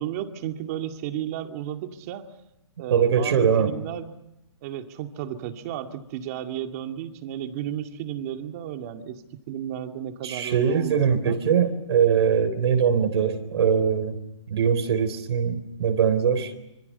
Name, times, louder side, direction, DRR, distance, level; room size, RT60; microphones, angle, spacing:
voice 1, 0.0-2.3 2.8-4.2 4.6-11.4, right 10 dB, 30° right, 6 dB, 2.1 m, -33 dB
voice 2, 2.9-3.7 10.2-14.2 14.5-16.5, right 7 dB, 55° right, 8 dB, 3.8 m, -22 dB
27.0 x 27.0 x 5.6 m, 0.89 s
hypercardioid pair, 165°, 16 cm